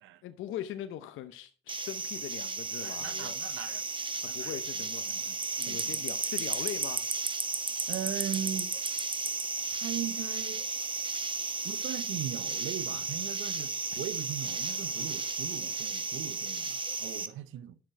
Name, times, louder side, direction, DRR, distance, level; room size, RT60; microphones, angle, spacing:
voice 1, 0.2-3.4 4.3-7.0, left 11 dB, 85° left, 0.7 m, -41 dB
sound 1, 1.7-17.3, right 4 dB, 25° right, 1.1 m, -34 dB
voice 2, 2.8-5.4 5.7-6.1 7.9-8.7 9.7-10.7 11.6-17.8, right 11 dB, 80° right, 0.7 m, -39 dB
10.5 x 6.2 x 4.5 m
cardioid pair, 90°, 20 cm